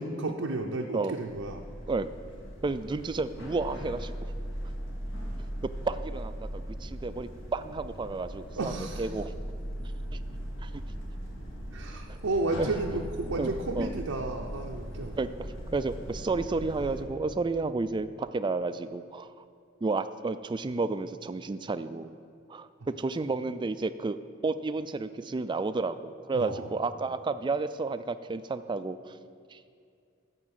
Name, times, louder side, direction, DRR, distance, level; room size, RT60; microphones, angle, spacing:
voice 1, 0.0-1.6 8.6-9.1 11.7-15.2 26.3-26.7, right 2 dB, 85° right, 1 dB, 0.7 m, -32 dB
sound 1, 1.3-17.0, equal, 70° left, 1.8 m, -39 dB
voice 2, 2.6-4.3 5.4-9.3 10.6-10.7 12.1-12.2 12.6-12.7 13.4-13.9 15.2-19.4 19.8-22.1 22.5-29.2 29.5-29.6, right 3 dB, 25° right, 12 dB, 0.3 m, -32 dB
13.5 x 4.7 x 8.1 m, 2.3 s
head